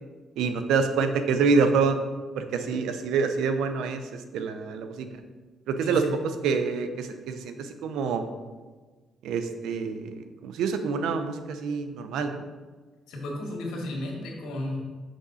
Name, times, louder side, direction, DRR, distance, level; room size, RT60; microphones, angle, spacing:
voice 1, 0.4-2.0 2.4-5.1 5.7-6.0 6.4-8.2 9.2-12.4, right 5 dB, 85° right, 8 dB, 0.6 m, -26 dB
voice 2, 5.8-6.1 13.1-14.8, left 1 dB, 90° left, 0 dB, 1.8 m, -33 dB
6.4 x 6.1 x 4.1 m, 1.3 s
cardioid pair, 90°, 0 cm